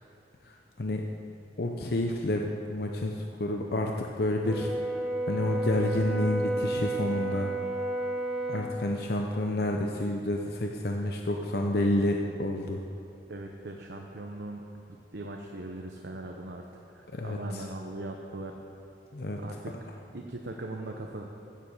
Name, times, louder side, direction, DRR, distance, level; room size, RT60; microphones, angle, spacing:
voice 1, 0.4-1.0 1.6-4.7 5.3-7.5 8.5-12.8 17.1-17.6 19.1-19.4, left 1 dB, 60° left, 1 dB, 0.8 m, -29 dB
Brass instrument, 4.5-8.7, right 2 dB, ahead, 1.0 m, -31 dB
voice 2, 13.3-14.6 15.1-16.7 16.9-18.6 19.4-19.8 20.1-21.3, right 2 dB, 70° right, 1 dB, 1.0 m, -39 dB
16.0 x 7.5 x 7.1 m, 2.7 s
head